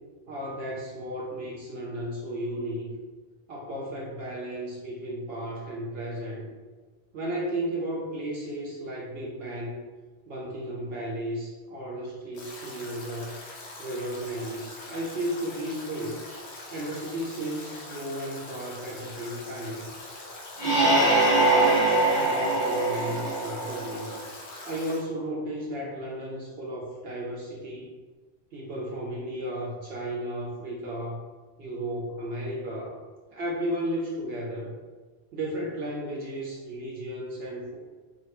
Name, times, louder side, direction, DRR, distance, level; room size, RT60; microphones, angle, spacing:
voice 1, 0.3-2.9 3.5-6.5 7.1-9.8 10.3-13.4 13.8-16.2 16.7-19.9 20.6-24.1 24.6-27.9 28.5-31.2 31.6-33.0 33.3-34.8 35.3-37.8, right 1 dB, 70° right, -4 dB, 0.8 m, -34 dB
Stream / Drip / Trickle dribble, 12.3-25.0, left 2 dB, 85° left, 0.9 m, -43 dB
sound 1, 20.6-24.2, right 2 dB, 30° left, 0.6 m, -23 dB
2.7 x 2.1 x 2.9 m, 1.4 s
omnidirectional pair, 1.1 m